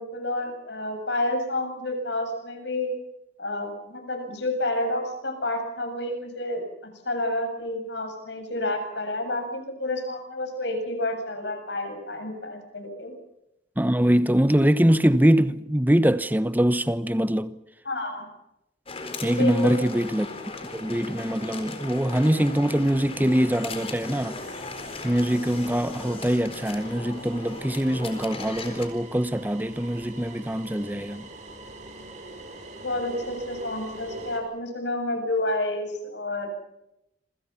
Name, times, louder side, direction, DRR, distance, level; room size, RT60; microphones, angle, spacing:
voice 1, 0.0-2.9 3.4-13.1 17.9-18.3 19.4-19.9 32.8-36.5, left 1 dB, 70° left, 7.4 m, -29 dB
voice 2, 13.8-17.6 19.2-20.3 20.7-24.4 25.0-31.2, equal, 10° right, 1.0 m, -23 dB
sound 1, 18.9-28.9, left 3 dB, 30° left, 4.3 m, -37 dB
sound 2, 22.6-34.4, right 2 dB, 40° right, 5.7 m, -44 dB
27.5 x 26.0 x 5.9 m
head